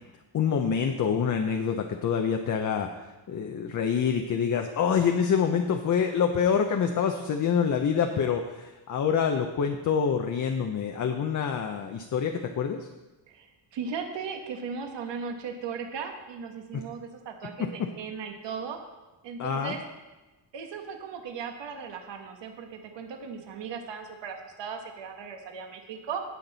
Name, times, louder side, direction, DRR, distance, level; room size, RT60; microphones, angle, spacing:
voice 1, 0.3-12.8 16.7-16.8 17.6-17.7 19.4-19.8, left 7 dB, 40° left, 4 dB, 0.7 m, -26 dB
voice 2, 13.3-18.8 19.2-19.8 20.5-26.2, right 6 dB, 70° right, 4 dB, 1.2 m, -37 dB
17.5 x 5.9 x 4.0 m, 1.1 s
cardioid pair, 155°, 45 cm